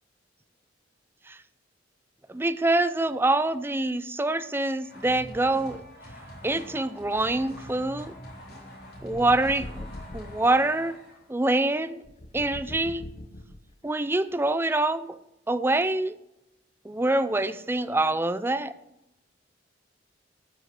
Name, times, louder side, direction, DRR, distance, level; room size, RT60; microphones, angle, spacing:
voice 1, 2.3-5.8 6.4-8.1 9.0-11.0 11.3-12.0 12.3-13.1 13.8-15.2 15.5-16.1 16.8-18.7, right 2 dB, 10° right, 13 dB, 0.5 m, -25 dB
sound 1, 4.8-11.3, equal, 55° left, 3.7 m, -44 dB
sound 2, 8.9-10.5 12.0-13.9, left 1 dB, 35° left, 0.6 m, -41 dB
13.0 x 5.6 x 7.5 m, 0.89 s
head